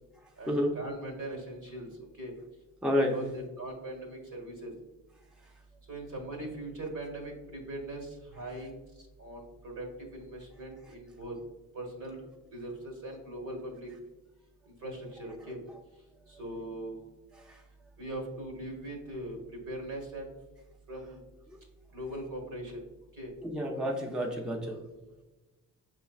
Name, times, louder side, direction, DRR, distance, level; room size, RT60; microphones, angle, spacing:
voice 1, 0.4-1.9 2.2-2.3 3.1-4.7 5.9-8.8 9.2-11.3 11.7-12.2 12.5-13.9 14.7-15.6 16.3-17.0 18.0-20.3 20.9-21.2 21.9-22.8 23.1-23.3 24.6-24.8, right 1 dB, 55° right, 1 dB, 1.4 m, -40 dB
voice 2, 2.8-3.1 17.5-17.6 21.5-21.6 23.4-24.7, equal, ahead, 0 dB, 0.6 m, -30 dB
5.4 x 3.2 x 2.4 m, 1.1 s
cardioid pair, 75°, 36 cm